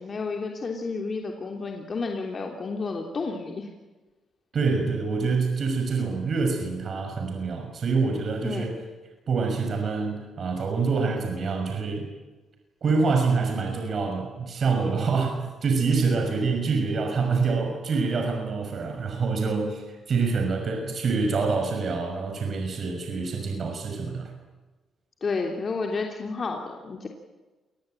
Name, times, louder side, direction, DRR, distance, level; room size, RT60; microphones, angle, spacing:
voice 1, 0.0-3.7 8.4-8.7 25.2-27.1, left 4 dB, 40° left, 2 dB, 3.2 m, -31 dB
voice 2, 4.5-8.8 9.3-12.1 12.8-24.3, right 4 dB, 50° right, 3 dB, 6.0 m, -26 dB
27.0 x 21.0 x 9.0 m, 1.2 s
cardioid pair, 90°, 0 cm